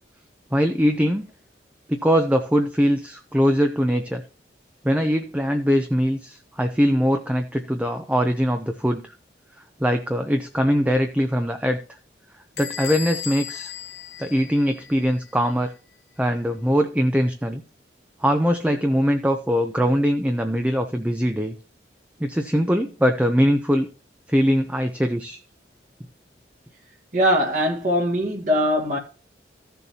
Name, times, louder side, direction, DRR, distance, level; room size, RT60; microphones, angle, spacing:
voice 1, 0.5-1.3 1.9-4.2 4.8-9.1 9.8-11.8 12.6-13.7 14.2-15.7 16.2-17.6 18.2-21.5 22.2-23.9 24.3-25.4, equal, 10° right, 0.6 m, -22 dB
Bell / Squeak, 12.6-15.1, left 8 dB, 65° left, 1.3 m, -35 dB
voice 2, 27.1-29.0, equal, 45° right, 1.7 m, -21 dB
15.0 x 6.9 x 2.8 m
head